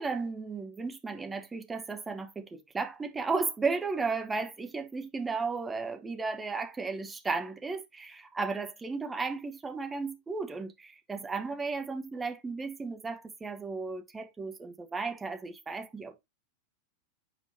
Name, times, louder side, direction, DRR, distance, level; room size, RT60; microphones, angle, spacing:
voice 1, 0.0-16.2, right 4 dB, 15° right, 1.0 m, -34 dB
7.9 x 4.5 x 2.6 m
figure-of-eight pair, 90°, 0 cm